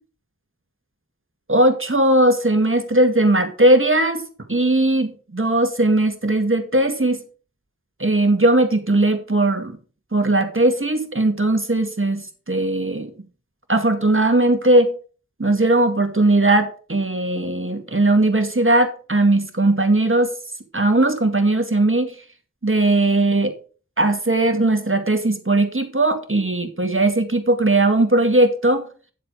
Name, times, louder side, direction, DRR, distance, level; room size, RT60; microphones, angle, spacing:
voice 1, 1.5-7.2 8.0-9.8 10.1-13.1 13.7-14.9 15.4-20.3 20.7-22.1 22.6-23.5 24.0-28.9, right 2 dB, 40° right, 6 dB, 2.1 m, -18 dB
10.0 x 7.6 x 4.9 m, 0.38 s
wide cardioid pair, 45°, 32 cm